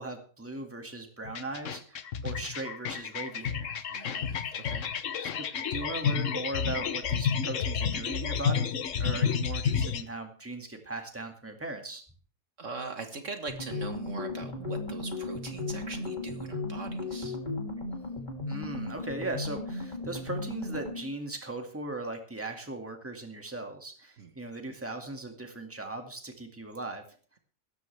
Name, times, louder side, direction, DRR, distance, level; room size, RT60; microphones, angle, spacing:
voice 1, 0.0-3.8 5.2-12.0 18.5-27.0, right 2 dB, 10° right, 4 dB, 2.0 m, -38 dB
sound 1, 1.2-10.0, left 7 dB, 60° left, 1.2 m, -30 dB
voice 2, 3.9-4.9 12.6-17.4 24.2-24.3, right 4 dB, 60° right, 6 dB, 1.7 m, -41 dB
sound 2, 13.5-21.1, left 3 dB, 30° left, 2.9 m, -36 dB
17.0 x 14.0 x 3.4 m, 0.39 s
omnidirectional pair, 1.5 m